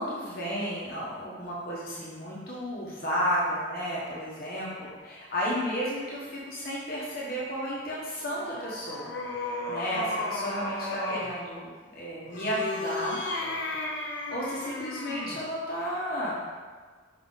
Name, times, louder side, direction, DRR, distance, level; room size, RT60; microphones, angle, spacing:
voice 1, 0.0-13.2 14.0-16.3, equal, 50° left, -6 dB, 1.3 m, -33 dB
sound 1, 8.3-11.3 12.2-15.4, left 2 dB, 75° left, 1.0 m, -34 dB
5.6 x 4.9 x 4.1 m, 1.5 s
head